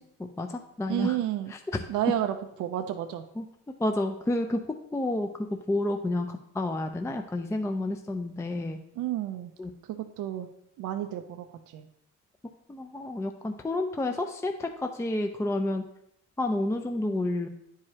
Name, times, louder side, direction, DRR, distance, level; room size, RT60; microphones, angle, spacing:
voice 1, 0.2-1.2 3.4-3.5 3.8-4.6 4.9-5.3 5.7-8.8 9.6-9.7 12.7-15.8 16.4-17.5, left 1 dB, 10° left, 5 dB, 0.4 m, -30 dB
voice 2, 0.9-1.5 1.9-3.2 9.0-9.5 9.8-10.5 10.8-11.9, right 12 dB, 85° right, 7 dB, 0.5 m, -31 dB
9.7 x 4.8 x 2.8 m, 0.78 s
cardioid pair, 90°, 30 cm